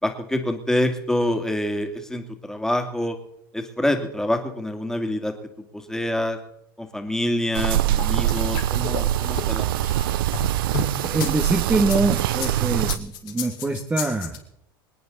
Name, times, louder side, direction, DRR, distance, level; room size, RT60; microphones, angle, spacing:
voice 1, 0.0-3.2 3.5-6.4 6.8-9.8, left 1 dB, 5° left, 4 dB, 2.8 m, -26 dB
sound 1, 7.5-13.0, right 13 dB, 75° right, 0.5 m, -23 dB
sound 2, 8.0-11.3 11.8-14.4, left 8 dB, 70° left, 3.7 m, -33 dB
voice 2, 10.8-14.4, right 2 dB, 15° right, 2 dB, 1.7 m, -24 dB
26.5 x 9.4 x 4.1 m, 0.75 s
hypercardioid pair, 85°, 12 cm